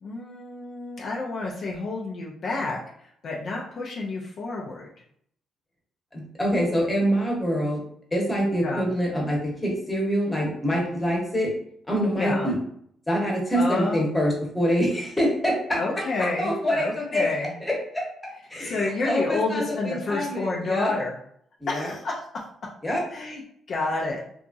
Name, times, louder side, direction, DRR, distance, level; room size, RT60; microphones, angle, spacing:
voice 1, 0.0-4.9 8.6-8.9 12.1-12.5 13.6-14.0 15.7-17.5 18.6-21.1 21.7-22.4 23.1-23.4 23.7-24.2, left 3 dB, 55° left, -3 dB, 0.5 m, -29 dB
voice 2, 6.1-7.8 8.1-11.5 11.9-12.6 13.1-15.8 16.4-17.3 17.6-18.0 18.5-20.9 21.6-21.9 22.8-23.0, equal, 15° left, -2 dB, 1.0 m, -25 dB
2.8 x 2.4 x 2.6 m, 0.67 s
cardioid pair, 90°, 0 cm